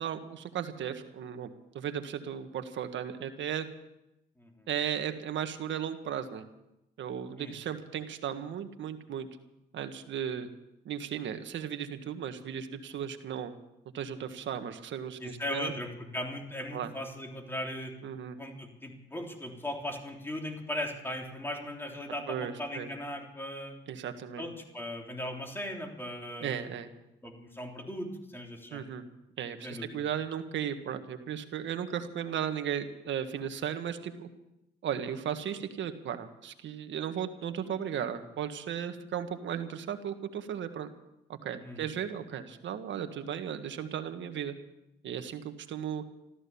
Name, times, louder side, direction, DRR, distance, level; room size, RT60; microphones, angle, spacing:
voice 1, 0.0-1.5 1.7-3.7 4.7-6.4 7.0-9.3 9.7-10.5 10.8-13.5 13.9-15.7 16.7-16.9 18.0-18.4 22.3-22.9 23.9-24.5 26.4-26.9 28.7-29.0 29.4-34.3 34.8-40.9 41.3-44.5 45.0-46.0, right 9 dB, 70° right, 8 dB, 1.6 m, -36 dB
voice 2, 4.4-4.7 7.4-7.5 15.2-17.9 18.4-23.7 24.4-26.7 27.2-28.9 29.6-30.0 41.6-41.9, left 1 dB, 10° left, 1 dB, 3.4 m, -38 dB
14.5 x 13.5 x 7.1 m, 0.89 s
cardioid pair, 90°, 20 cm